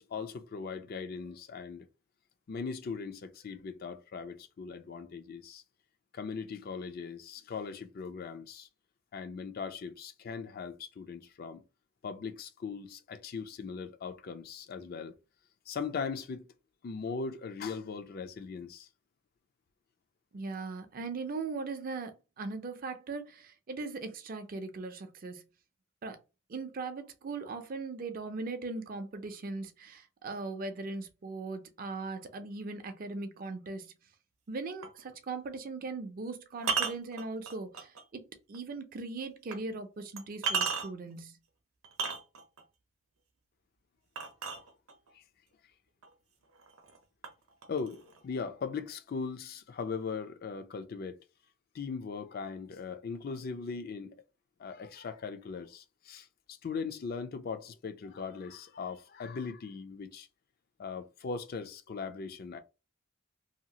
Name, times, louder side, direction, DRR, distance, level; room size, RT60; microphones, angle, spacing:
voice 1, 0.0-1.9 2.5-5.6 6.1-8.7 9.1-11.6 12.0-15.1 15.7-16.5 16.8-18.9 44.6-44.7 45.1-45.2 47.7-51.2 51.7-54.2 54.6-60.3 60.8-62.6, left 5 dB, 45° left, 0.4 m, -39 dB
voice 2, 20.3-25.4 26.0-26.2 26.5-33.9 34.5-41.4, right 3 dB, 45° right, 0.4 m, -39 dB
sound 1, 34.8-35.0 36.6-38.0 38.5-38.6 39.5-39.6 40.2-41.1 41.8-42.6 44.2-45.1 46.0-46.1 46.5-47.0 47.2-48.2, right 5 dB, 85° right, 0.6 m, -34 dB
2.8 x 2.4 x 2.7 m
head